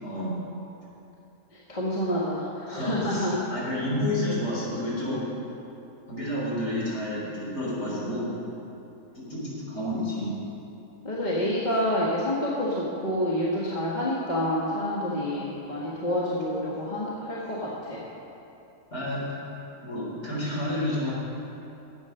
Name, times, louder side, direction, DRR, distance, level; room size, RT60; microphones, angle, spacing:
voice 1, 0.0-0.4 2.7-5.2 6.1-8.3 9.2-10.3 15.0-15.1 18.9-19.2 19.8-21.1, left 1 dB, 45° left, -6 dB, 3.6 m, -30 dB
voice 2, 1.5-3.6 11.0-18.0, left 1 dB, 30° left, -6 dB, 1.5 m, -28 dB
11.0 x 8.0 x 6.5 m, 2.8 s
omnidirectional pair, 1.6 m